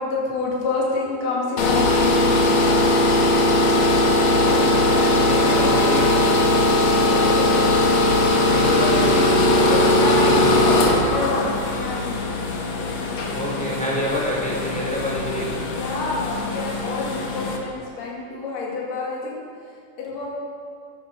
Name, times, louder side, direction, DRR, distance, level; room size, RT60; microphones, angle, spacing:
voice 1, 0.0-3.0 4.4-6.0 7.0-7.6 9.7-12.3 15.7-19.4 20.0-20.3, left 3 dB, 50° left, -4 dB, 3.3 m, -29 dB
sound 1, 1.6-17.6, left 1 dB, 70° left, 1.2 m, -19 dB
voice 2, 4.4-4.8 5.2-6.2 8.5-10.8 13.3-15.6, equal, 5° left, -3 dB, 1.9 m, -27 dB
13.5 x 11.5 x 5.2 m, 2.3 s
omnidirectional pair, 4.5 m